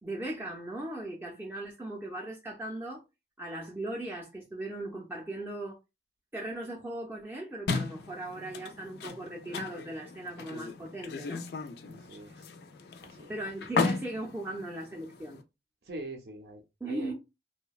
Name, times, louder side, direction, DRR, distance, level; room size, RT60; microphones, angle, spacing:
voice 1, 0.0-3.0 3.4-5.8 6.3-11.4 13.3-15.4 16.8-17.1, right 1 dB, 10° right, 0.4 m, -38 dB
sound 1, 7.7-15.4, left 4 dB, 65° left, 0.4 m, -36 dB
voice 2, 11.9-12.5 13.0-13.3 15.9-17.1, right 1 dB, 65° right, 0.5 m, -44 dB
2.6 x 2.1 x 2.3 m
head